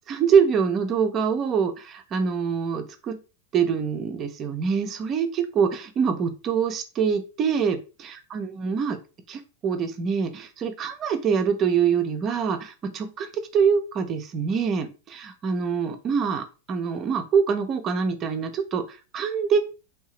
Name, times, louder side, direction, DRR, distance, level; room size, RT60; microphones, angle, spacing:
voice 1, 0.1-3.2 3.5-9.0 9.3-19.6, right 6 dB, 30° right, 8 dB, 0.6 m, -25 dB
3.3 x 2.7 x 3.0 m, 0.32 s
figure-of-eight pair, 90°, 0 cm